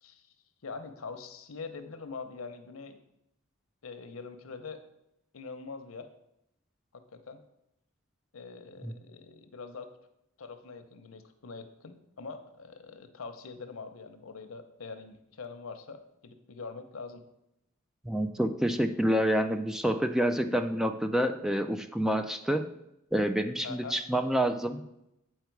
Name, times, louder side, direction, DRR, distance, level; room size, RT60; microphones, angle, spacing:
voice 1, 0.6-3.0 3.8-4.8 5.3-6.1 6.9-7.4 8.3-9.9 10.4-17.2 23.6-24.0, left 4 dB, 85° left, 8 dB, 0.8 m, -43 dB
voice 2, 18.1-22.7 23.1-24.8, equal, ahead, 7 dB, 0.3 m, -28 dB
8.1 x 4.6 x 4.6 m, 0.83 s
head